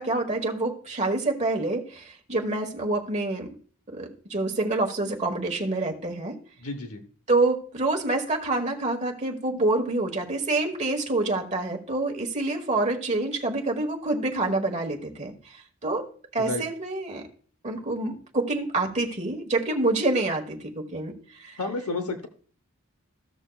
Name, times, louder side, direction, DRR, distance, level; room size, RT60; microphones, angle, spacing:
voice 1, 0.0-3.5 3.9-6.4 7.3-17.3 17.6-21.6, right 2 dB, 30° right, 2 dB, 1.3 m, -27 dB
voice 2, 6.6-7.0 16.5-16.6 21.6-22.3, left 3 dB, 85° left, 6 dB, 0.9 m, -30 dB
15.0 x 6.3 x 2.3 m, 0.44 s
head